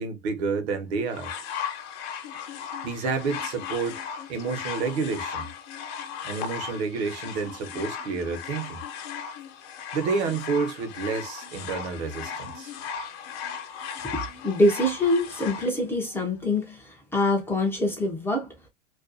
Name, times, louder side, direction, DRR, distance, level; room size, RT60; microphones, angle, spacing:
voice 1, 0.0-1.3 2.6-4.0 4.3-5.5 6.2-8.8 9.9-12.7, right 4 dB, 65° right, 0.9 m, -29 dB
sound 1, 1.1-15.7 16.6-16.7, left 7 dB, 55° left, 0.8 m, -36 dB
voice 2, 14.4-18.5, left 1 dB, 5° left, 0.3 m, -25 dB
2.5 x 2.2 x 2.4 m
supercardioid pair, 135°, 35 cm